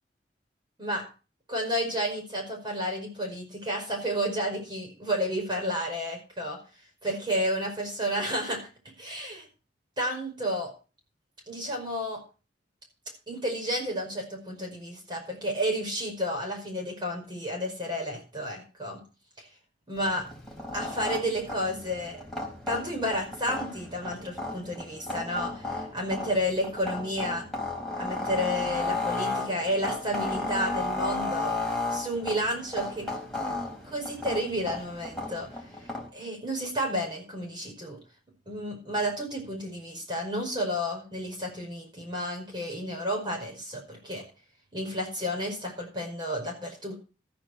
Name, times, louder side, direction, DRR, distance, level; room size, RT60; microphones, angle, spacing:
voice 1, 1.5-6.6 7.0-8.7 9.0-9.5 10.0-10.7 11.5-12.2 13.3-19.0 19.4-19.5 19.9-20.3 20.7-22.2 22.7-27.5 28.0-31.6 31.9-33.1 33.8-35.5 36.1-38.0 38.5-44.2 44.7-47.0, equal, 25° right, 0 dB, 5.2 m, -31 dB
sound 1, 20.0-36.1, left 2 dB, ahead, 4.4 m, -34 dB
14.0 x 10.0 x 4.7 m, 0.34 s
head